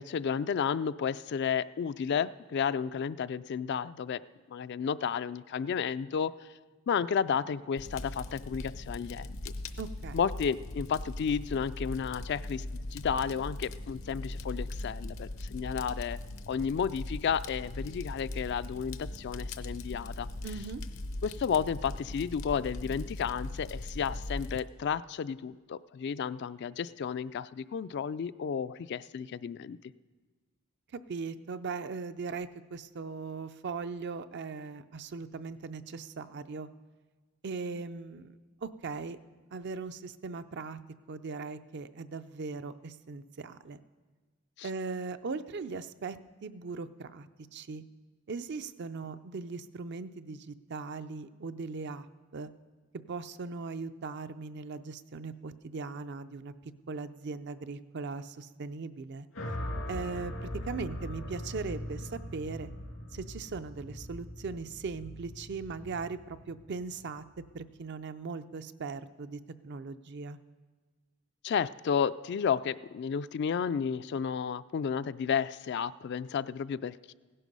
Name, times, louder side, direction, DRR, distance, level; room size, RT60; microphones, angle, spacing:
voice 1, 0.0-4.2 4.5-6.5 6.9-9.5 10.1-16.2 16.5-20.3 21.2-29.8 44.6-44.7 49.0-49.2 71.4-77.1, left 7 dB, 55° left, 15 dB, 0.3 m, -32 dB
Fire, 7.8-24.6, left 2 dB, 75° left, 0.7 m, -40 dB
voice 2, 9.8-10.2 20.4-20.8 30.9-36.7 37.4-39.2 39.5-40.8 41.1-43.8 44.6-47.8 48.3-52.1 52.3-52.5 53.1-56.5 56.9-59.3 59.9-62.7 63.1-67.2 67.5-70.4, right 4 dB, 55° right, 11 dB, 0.5 m, -39 dB
sound 1, 59.3-67.6, left 1 dB, 90° left, 2.5 m, -41 dB
16.0 x 11.0 x 5.4 m, 1.4 s
head